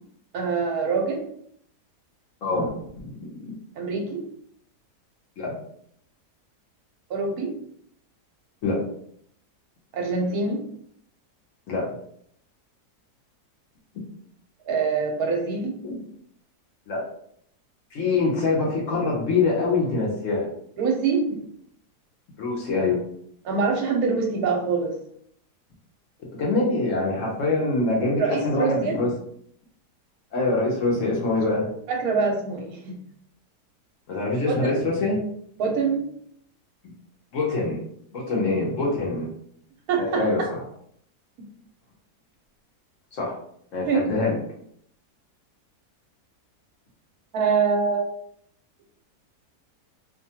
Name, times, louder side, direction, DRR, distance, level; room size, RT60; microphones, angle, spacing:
voice 1, 0.3-1.2 3.8-4.2 7.1-7.5 9.9-10.6 14.7-15.8 20.8-21.2 23.4-25.0 28.2-28.9 31.9-32.9 34.5-34.8 35.6-36.0 39.9-40.2 43.9-44.0 47.3-48.0, right 5 dB, 75° right, 1 dB, 1.0 m, -24 dB
voice 2, 2.4-2.7 3.0-3.5 5.4-5.5 8.6-8.8 11.7-11.9 15.8-16.0 16.9-17.1 17.9-20.5 22.4-23.0 26.4-29.1 30.3-31.7 34.1-35.2 37.3-37.8 38.1-39.3 40.0-40.6 43.1-43.4 43.7-44.4, left 3 dB, 60° left, -3 dB, 0.9 m, -24 dB
2.7 x 2.2 x 2.7 m, 0.67 s
omnidirectional pair, 1.7 m